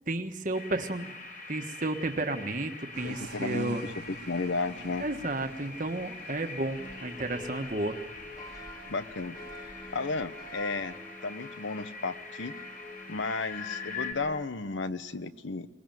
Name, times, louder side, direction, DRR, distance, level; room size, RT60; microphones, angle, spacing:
voice 1, 0.1-1.1 1.5-3.9 5.0-8.0, right 2 dB, 40° right, 6 dB, 1.5 m, -32 dB
sound 1, 0.5-14.1, left 4 dB, 45° left, 4.2 m, -44 dB
sound 2, 2.9-11.0, right 3 dB, 60° right, 1.6 m, -51 dB
voice 2, 3.0-5.1 8.9-9.4 9.9-12.5 13.1-15.7, left 3 dB, 75° left, 13 dB, 1.0 m, -34 dB
sound 3, 6.8-14.5, left 1 dB, 20° left, 1.4 m, -47 dB
23.0 x 21.0 x 9.2 m, 1.1 s
head